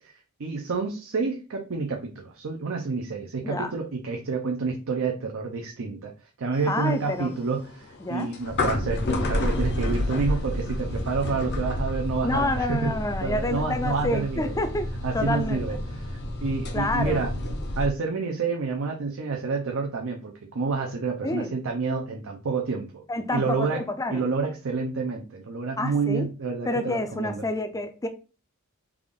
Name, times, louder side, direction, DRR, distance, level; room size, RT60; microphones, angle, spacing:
voice 1, 0.4-6.1 6.4-12.9 13.2-14.6 15.0-17.3 17.8-23.0 23.3-23.8 24.1-27.5, right 4 dB, 65° right, 0.6 m, -29 dB
sound 1, 6.5-17.9, left 1 dB, 50° left, 0.7 m, -30 dB
voice 2, 6.7-7.3 8.0-8.3 12.2-14.9 15.1-15.8 16.7-17.3 21.2-21.5 23.1-24.2 25.8-26.3 26.7-28.1, left 2 dB, 15° left, 0.4 m, -28 dB
3.5 x 2.4 x 3.6 m
head